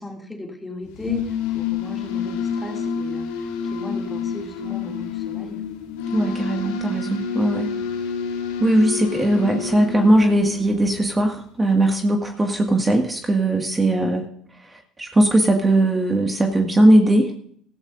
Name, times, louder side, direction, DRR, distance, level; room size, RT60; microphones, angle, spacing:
voice 1, 0.0-3.3 3.6-5.6, left 2 dB, 15° left, 1 dB, 2.6 m, -35 dB
sound 1, 0.9-11.3, left 6 dB, 85° left, 2.0 m, -28 dB
voice 2, 6.1-7.7 8.6-14.2 15.0-17.3, right 1 dB, 20° right, 2 dB, 2.0 m, -19 dB
16.5 x 15.0 x 2.6 m, 0.63 s
hypercardioid pair, 70°, 0 cm